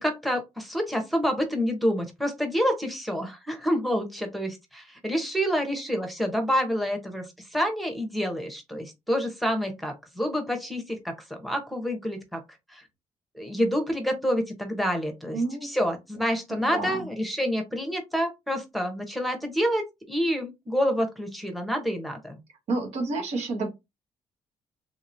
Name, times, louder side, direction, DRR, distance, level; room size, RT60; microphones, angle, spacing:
voice 1, 0.0-12.4 12.7-12.8 13.3-22.4, equal, ahead, 0.8 m, -28 dB
voice 2, 15.3-15.7 16.5-17.0 22.7-23.7, right 3 dB, 90° right, 1.2 m, -29 dB
3.3 x 2.8 x 2.5 m
cardioid pair, 135°, 11 cm